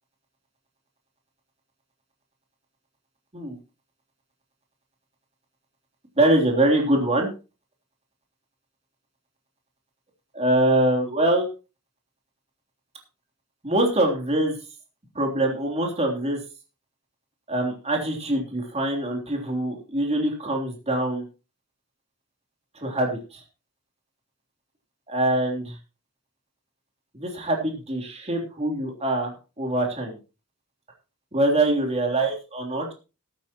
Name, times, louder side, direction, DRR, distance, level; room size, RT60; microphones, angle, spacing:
voice 1, 6.2-7.3 10.3-11.5 13.6-14.5 15.1-16.4 17.5-21.2 22.7-23.4 25.1-25.7 27.1-30.2 31.3-32.9, right 1 dB, 30° right, 1 dB, 3.3 m, -24 dB
13.5 x 13.5 x 3.0 m, 0.31 s
head